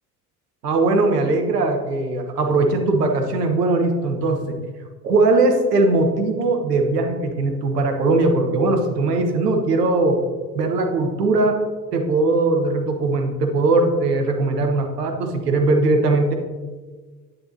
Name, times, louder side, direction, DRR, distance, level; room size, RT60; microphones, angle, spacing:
voice 1, 0.6-4.6 5.0-10.2 10.5-11.6 11.9-16.3, right 2 dB, 80° right, 4 dB, 1.0 m, -20 dB
8.9 x 8.6 x 2.7 m, 1.4 s
figure-of-eight pair, 55°, 47 cm